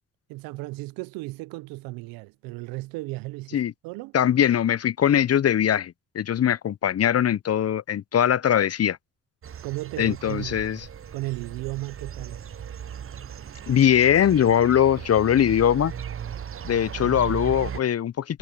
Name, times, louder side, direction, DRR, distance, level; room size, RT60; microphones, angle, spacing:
voice 1, 0.3-4.2 9.6-10.6 11.1-12.4, right 21 dB, 90° right, 0.6 m, -35 dB
voice 2, 4.1-9.0 10.0-10.8 13.7-15.9 16.6-18.4, left 9 dB, 45° left, 0.6 m, -21 dB
sound 1, 9.4-17.8, right 8 dB, 40° right, 0.7 m, -37 dB
hypercardioid pair, 40°, 34 cm